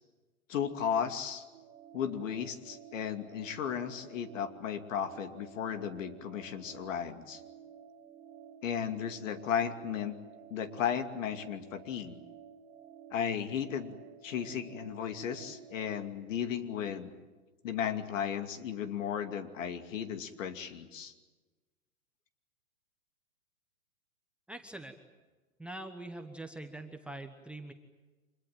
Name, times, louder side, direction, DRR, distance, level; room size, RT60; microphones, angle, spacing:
voice 1, 0.5-1.4 1.9-7.4 8.6-10.1 10.5-12.2 13.1-14.0 14.2-17.1 17.6-21.1, left 8 dB, 60° left, 8 dB, 2.6 m, -35 dB
sound 1, 1.5-16.1, right 8 dB, 25° right, 1.9 m, -53 dB
voice 2, 24.5-25.0 25.6-27.7, right 2 dB, 5° right, 8 dB, 0.9 m, -43 dB
26.0 x 21.0 x 9.1 m, 1.2 s
hypercardioid pair, 140°, 44 cm